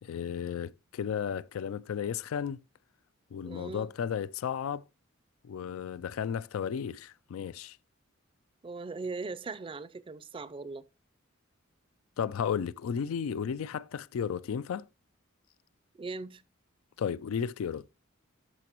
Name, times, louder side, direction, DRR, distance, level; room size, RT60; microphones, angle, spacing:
voice 1, 0.0-2.6 3.3-4.8 5.4-7.8 12.2-14.9 17.0-17.8, left 7 dB, 85° left, 0.3 m, -34 dB
voice 2, 3.4-3.9 8.6-10.8 16.0-16.4, right 3 dB, 25° right, 0.4 m, -39 dB
12.5 x 6.0 x 2.9 m
head